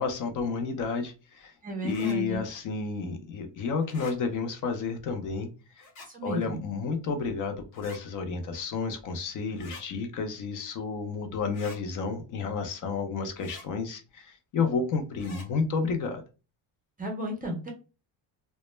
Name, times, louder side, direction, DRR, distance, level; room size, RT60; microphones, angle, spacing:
voice 1, 0.0-1.5 1.8-5.5 5.8-5.9 6.2-16.2, left 4 dB, 45° left, 6 dB, 0.4 m, -31 dB
voice 2, 1.6-2.4 6.0-6.6 17.0-17.7, right 1 dB, 20° right, 0 dB, 0.4 m, -33 dB
sound 1, 1.9-2.2 3.8-4.2 5.8-6.1 7.7-8.0 9.5-9.8 11.5-11.8 13.4-13.7 15.2-15.5, left 3 dB, 75° left, 1.1 m, -46 dB
2.1 x 2.1 x 3.0 m, 0.33 s
cardioid pair, 140°, 48 cm